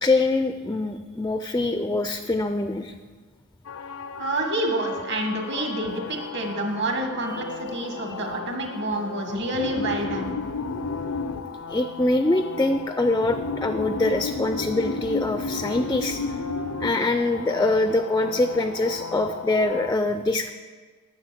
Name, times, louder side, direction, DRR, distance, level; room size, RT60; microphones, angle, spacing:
voice 1, 0.0-2.9 7.3-7.5 11.7-16.2 16.8-20.5, left 2 dB, 15° left, 8 dB, 0.4 m, -24 dB
sound 1, 3.6-19.9, left 4 dB, 80° left, 0.6 m, -33 dB
voice 2, 4.2-10.3, right 1 dB, 55° right, 3 dB, 1.7 m, -28 dB
10.5 x 6.9 x 7.6 m, 1.5 s
head